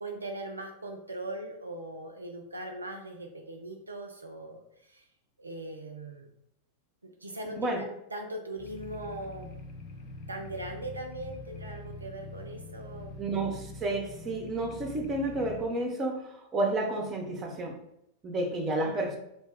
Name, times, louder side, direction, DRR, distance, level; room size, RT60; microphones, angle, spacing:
voice 1, 0.0-5.0 5.4-6.3 7.0-9.5 10.3-13.2 18.8-19.1, right 1 dB, 80° right, 3 dB, 0.3 m, -40 dB
sound 1, 8.6-15.6, left 2 dB, 40° left, 0.5 m, -44 dB
voice 2, 13.2-17.7 18.2-19.2, right 2 dB, 25° right, 2 dB, 0.6 m, -31 dB
2.7 x 2.1 x 3.4 m, 0.79 s
figure-of-eight pair, 90°, 0 cm